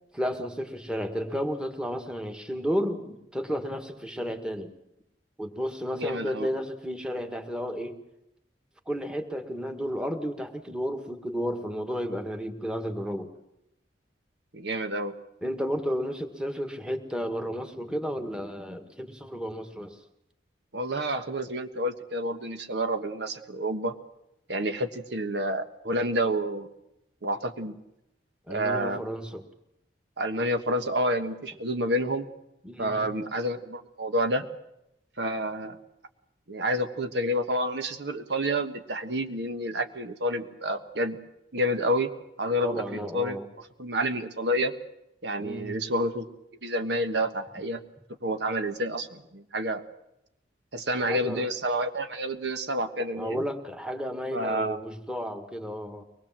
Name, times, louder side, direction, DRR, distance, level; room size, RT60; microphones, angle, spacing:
voice 1, 0.1-4.7 5.4-7.9 8.8-13.3 15.4-20.0 28.5-29.5 32.6-33.2 42.6-43.5 45.4-45.8 51.0-51.5 53.1-56.0, equal, 5° right, 5 dB, 1.8 m, -32 dB
voice 2, 6.0-6.5 14.5-15.1 20.7-23.9 24.5-26.7 27.2-27.8 28.5-29.0 30.2-32.3 32.8-34.4 35.2-35.8 36.5-41.2 41.5-42.1 42.4-43.4 43.8-44.7 45.2-46.3 46.6-47.8 48.2-49.8 50.7-53.4 54.3-54.8, equal, 70° right, 7 dB, 1.5 m, -29 dB
23.5 x 20.5 x 7.5 m, 0.83 s
head